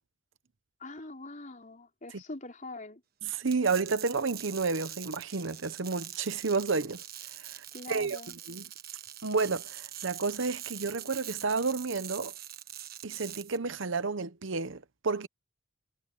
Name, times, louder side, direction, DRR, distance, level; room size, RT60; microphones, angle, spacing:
voice 1, 0.8-3.0 7.7-8.3, left 2 dB, 40° left, 4.8 m, -43 dB
voice 2, 3.2-7.0 7.4-8.7 9.2-12.3 13.0-15.3, right 4 dB, 65° right, 0.9 m, -31 dB
sound 1, 3.3-13.6, right 12 dB, 50° right, 1.5 m, -44 dB
head